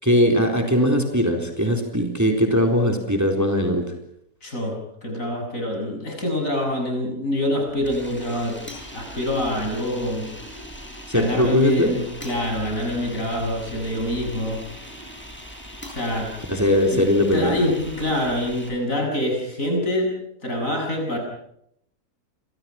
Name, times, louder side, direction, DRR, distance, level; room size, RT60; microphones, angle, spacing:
voice 1, 0.0-3.8 11.1-11.9 16.5-17.6, equal, 10° right, 3 dB, 3.9 m, -20 dB
voice 2, 4.4-8.6 8.9-10.3 11.1-14.6 15.9-16.3 16.9-17.0 17.3-20.1 20.4-21.2, left 1 dB, 60° left, 2 dB, 8.0 m, -25 dB
sound 1, 7.7-18.7, equal, 5° left, 6.9 m, -40 dB
29.0 x 26.0 x 6.0 m, 0.74 s
omnidirectional pair, 1.6 m